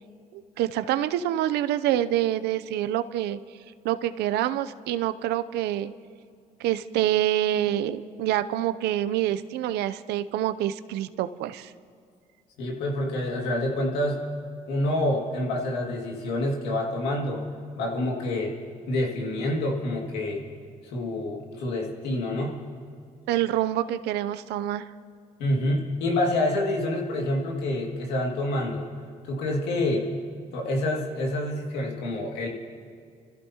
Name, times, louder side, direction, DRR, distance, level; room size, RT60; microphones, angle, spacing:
voice 1, 0.3-3.4 3.8-5.9 6.6-11.7 23.3-24.9, right 12 dB, 90° right, 13 dB, 0.6 m, -26 dB
voice 2, 12.6-14.2 14.7-17.5 17.8-18.6 18.9-20.4 20.8-22.6 25.4-28.9 29.2-30.1 30.5-32.5, left 1 dB, 90° left, 0 dB, 2.2 m, -27 dB
29.0 x 14.5 x 2.9 m, 2.2 s
supercardioid pair, 65°, 17 cm